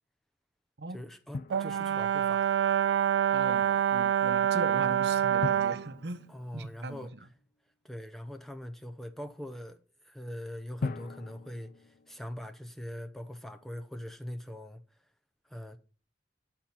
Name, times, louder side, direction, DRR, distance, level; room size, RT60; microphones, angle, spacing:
voice 1, 0.9-2.6 6.3-7.1 7.8-9.8 10.0-14.8 15.4-15.8, left 1 dB, ahead, 0.6 m, -42 dB
Drum, 1.3-2.4 5.4-7.3 10.8-12.8, left 3 dB, 50° left, 0.4 m, -40 dB
Brass instrument, 1.5-5.9, right 9 dB, 90° right, 0.4 m, -26 dB
voice 2, 3.3-6.3 6.5-7.3, right 2 dB, 65° right, 0.9 m, -39 dB
10.5 x 4.4 x 5.7 m
head